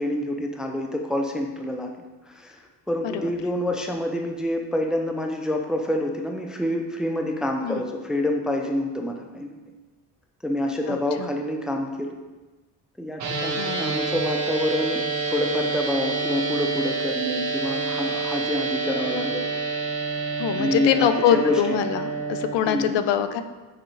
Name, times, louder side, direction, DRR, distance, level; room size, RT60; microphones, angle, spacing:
voice 1, 0.0-1.9 2.3-2.6 2.9-9.5 10.4-12.1 13.0-19.5 20.6-21.6 22.6-23.0, left 1 dB, ahead, 2 dB, 0.4 m, -27 dB
voice 2, 10.9-11.3 13.5-13.9 20.4-23.4, left 9 dB, 80° left, 10 dB, 0.6 m, -24 dB
sound 1, 13.2-22.5, right 4 dB, 40° right, 1.3 m, -28 dB
6.5 x 4.9 x 3.1 m, 1.2 s
cardioid pair, 135°, 42 cm